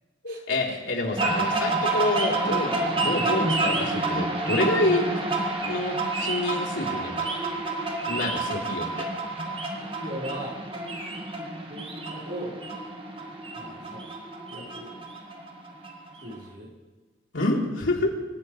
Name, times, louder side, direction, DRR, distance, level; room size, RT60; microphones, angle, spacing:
voice 1, 0.2-5.1 5.6-7.3 8.1-9.1 17.3-18.1, left 2 dB, 90° left, -2 dB, 3.6 m, -27 dB
sound 1, 1.2-16.4, right 2 dB, 25° right, 1.9 m, -29 dB
voice 2, 9.8-10.6 11.7-12.5 13.5-14.0 14.5-14.9 16.2-16.7, right 1 dB, 60° right, -3 dB, 5.1 m, -38 dB
26.0 x 16.0 x 3.3 m, 1.3 s
head